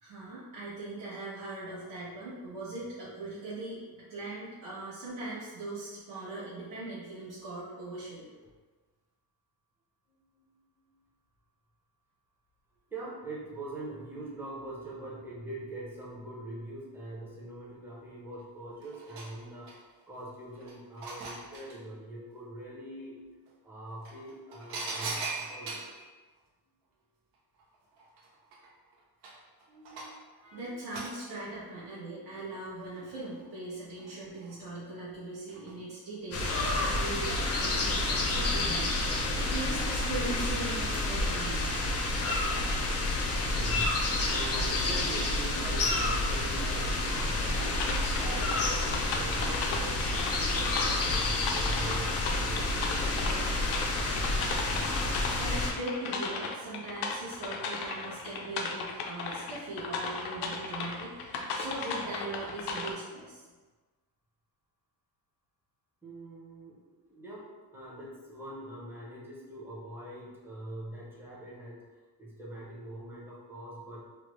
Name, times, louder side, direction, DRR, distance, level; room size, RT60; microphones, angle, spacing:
voice 1, 0.0-8.4 30.4-41.7 54.9-63.5, right 2 dB, 60° right, -10 dB, 0.9 m, -40 dB
voice 2, 10.1-10.9 12.9-19.8 20.1-23.2 23.6-25.9 29.7-30.8 32.8-34.3 35.8-35.9 43.4-53.1 66.0-71.8 72.2-74.0, right 1 dB, 5° right, -7 dB, 0.6 m, -43 dB
sound 1, 18.4-18.5 18.8-20.0 20.5-21.8 23.5-23.6 24.0-26.0 27.6-27.7 28.0-30.3 30.9-31.2 32.7-33.5 34.0-34.5 35.5-35.8 36.1-36.2, right 3 dB, 90° right, 0.6 m, -40 dB
sound 2, 36.3-55.7, left 2 dB, 40° left, 0.5 m, -29 dB
sound 3, 47.6-62.9, left 4 dB, 90° left, 0.5 m, -36 dB
3.2 x 2.0 x 3.0 m, 1.3 s
cardioid pair, 160°, 38 cm